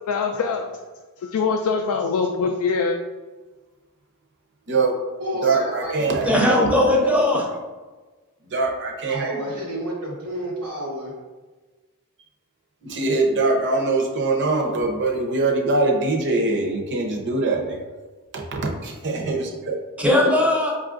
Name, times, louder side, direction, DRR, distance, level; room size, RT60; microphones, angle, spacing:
voice 1, 0.1-0.8 1.2-3.0, left 5 dB, 80° left, 0.3 m, -23 dB
voice 2, 4.7-5.0 5.4-7.1 8.4-9.4 12.8-17.8 18.3-19.8, right 3 dB, 55° right, 0.6 m, -23 dB
voice 3, 5.2-5.9 9.1-11.1, equal, 80° right, 0.8 m, -30 dB
voice 4, 6.0-7.5 20.0-20.7, left 1 dB, 5° right, 0.5 m, -19 dB
5.3 x 2.4 x 2.5 m
head